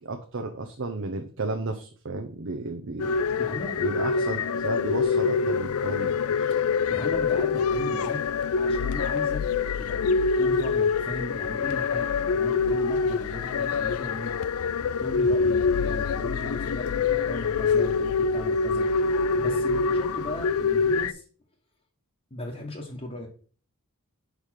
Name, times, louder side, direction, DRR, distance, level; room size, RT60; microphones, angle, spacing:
voice 1, 0.0-3.1 3.8-6.5, right 3 dB, 55° right, 5 dB, 0.7 m, -33 dB
sound 1, 3.0-21.1, left 5 dB, 70° left, 0.4 m, -25 dB
voice 2, 3.4-3.7 6.9-8.2 8.5-9.4 9.8-14.3 15.0-18.9 19.4-21.3 22.3-23.3, left 1 dB, 30° left, -3 dB, 1.1 m, -37 dB
5.1 x 4.9 x 5.6 m, 0.42 s
head